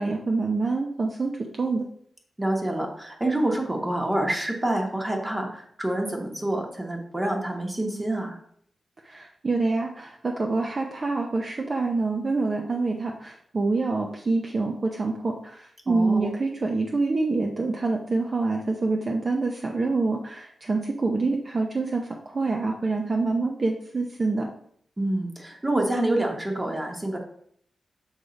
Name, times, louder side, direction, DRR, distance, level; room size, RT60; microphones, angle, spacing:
voice 1, 0.0-1.9 9.0-24.5, right 3 dB, 35° right, 1 dB, 0.6 m, -26 dB
voice 2, 2.4-8.4 15.9-16.3 25.0-27.2, right 1 dB, 15° right, 1 dB, 1.1 m, -27 dB
6.4 x 3.6 x 5.2 m, 0.64 s
wide cardioid pair, 155°, 0 cm